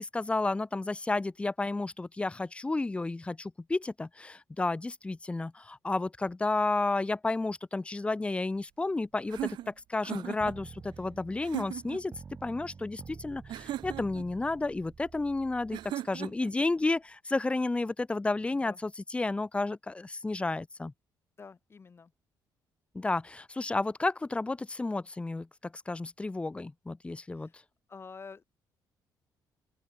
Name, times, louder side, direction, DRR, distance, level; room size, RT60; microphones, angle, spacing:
voice 1, 0.0-12.1 12.4-20.9 22.9-27.5, left 2 dB, 15° left, 1.1 m, -32 dB
sound 1, 9.3-10.6 11.4-12.0 13.5-14.3 15.7-16.5, right 13 dB, 80° right, 1.3 m, -37 dB
sound 2, 10.4-15.9, right 5 dB, 30° right, 7.3 m, -49 dB
voice 2, 21.4-22.1 27.3-27.6 27.9-28.4, left 5 dB, 30° left, 3.6 m, -48 dB
open air
cardioid pair, 110°, 8 cm